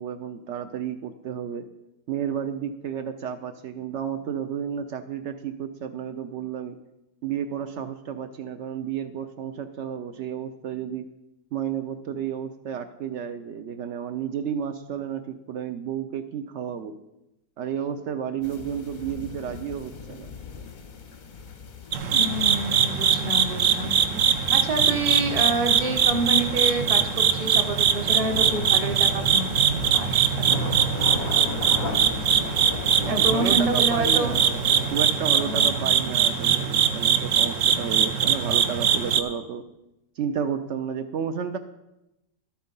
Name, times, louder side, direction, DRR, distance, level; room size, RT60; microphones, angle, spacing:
voice 1, 0.0-1.6 2.1-6.8 7.2-11.1 11.5-17.0 17.6-20.3 33.0-39.6 40.2-41.6, right 8 dB, 85° right, 8 dB, 0.6 m, -32 dB
sound 1, 18.4-35.0, left 5 dB, 45° left, 0.6 m, -38 dB
sound 2, 21.9-39.2, right 7 dB, 60° right, 0.9 m, -22 dB
voice 2, 22.1-24.0 24.5-29.5 29.9-30.8 33.1-34.4 35.3-36.0, right 2 dB, 25° right, 6 dB, 0.9 m, -28 dB
12.0 x 8.9 x 5.4 m, 0.92 s
omnidirectional pair, 1.9 m